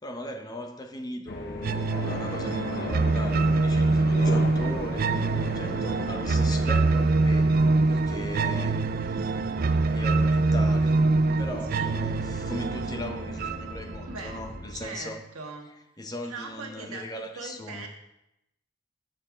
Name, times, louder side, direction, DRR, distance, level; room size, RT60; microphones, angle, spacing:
voice 1, 0.0-8.8 9.1-9.3 9.8-11.0 11.4-15.2 16.0-17.9, left 1 dB, 20° left, 5 dB, 0.8 m, -39 dB
sound 1, 1.3-14.9, left 2 dB, 45° left, 0.8 m, -38 dB
sound 2, 1.6-14.6, right 3 dB, 45° right, 0.3 m, -24 dB
voice 2, 14.1-14.4 14.7-15.7 16.3-17.9, right 3 dB, 90° right, 3 dB, 1.5 m, -40 dB
7.7 x 6.8 x 5.0 m, 0.85 s
head